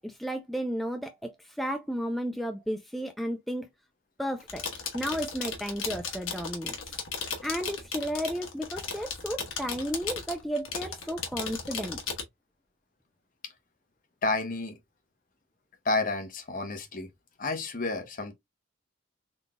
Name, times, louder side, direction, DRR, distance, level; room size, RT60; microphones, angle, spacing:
voice 1, 0.0-3.7 4.2-4.6 4.9-6.9 7.4-12.0, equal, ahead, 0.3 m, -33 dB
sound 1, 4.4-12.2, left 5 dB, 85° left, 1.2 m, -36 dB
voice 2, 14.2-14.8 15.8-17.1 17.4-18.3, left 3 dB, 45° left, 0.9 m, -30 dB
3.9 x 3.6 x 2.2 m
head